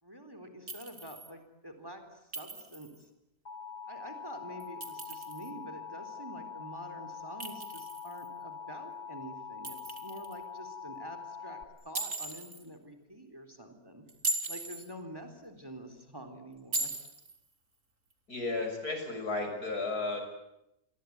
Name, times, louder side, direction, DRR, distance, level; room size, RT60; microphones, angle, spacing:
voice 1, 0.0-3.1 3.9-11.6 11.8-14.0 14.5-16.9, right 1 dB, 15° right, 7 dB, 3.8 m, -47 dB
Chink clink, 0.7-1.3 2.3-3.0 4.6-5.5 7.4-8.3 9.6-10.4 11.9-12.6 14.1-14.9 16.7-17.4, right 2 dB, 55° right, 3.4 m, -38 dB
Alarm, 3.5-11.6, left 6 dB, 45° left, 2.1 m, -44 dB
voice 2, 18.3-20.2, left 3 dB, 80° left, 4 dB, 7.0 m, -33 dB
29.0 x 21.5 x 9.6 m, 0.86 s
omnidirectional pair, 1.6 m